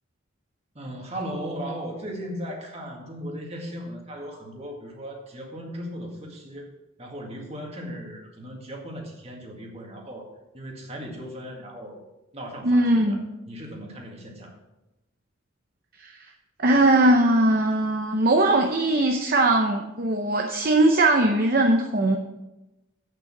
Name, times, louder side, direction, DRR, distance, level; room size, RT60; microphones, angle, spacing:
voice 1, 0.8-6.7 7.0-10.3 10.5-12.0 12.3-13.2 13.5-14.5, equal, 30° right, 1 dB, 1.9 m, -37 dB
voice 2, 12.6-13.2 16.0-16.1 16.6-22.2, right 2 dB, 45° right, 3 dB, 0.7 m, -20 dB
8.5 x 7.0 x 5.9 m, 0.99 s
head